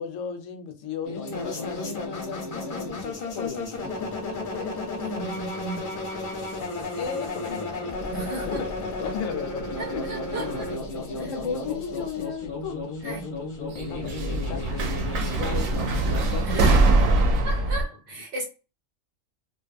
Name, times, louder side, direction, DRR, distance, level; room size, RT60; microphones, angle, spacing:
voice 1, 0.0-4.8 7.0-8.0 8.4-10.7 11.1-12.8 13.7-15.0 15.2-15.8 16.3-17.1, left 6 dB, 75° left, 0.9 m, -36 dB
sound 1, 1.0-16.3, left 2 dB, 45° left, 0.8 m, -33 dB
voice 2, 5.0-5.9 8.1-8.6 9.8-10.7 11.2-11.3 13.0-13.3 16.4-16.9 17.4-18.4, right 3 dB, 55° right, 0.7 m, -35 dB
sound 2, 7.9-9.9 10.2-10.9 12.0-12.1 13.7-17.8, right 2 dB, 85° right, 1.0 m, -23 dB
2.8 x 2.2 x 2.4 m
omnidirectional pair, 1.3 m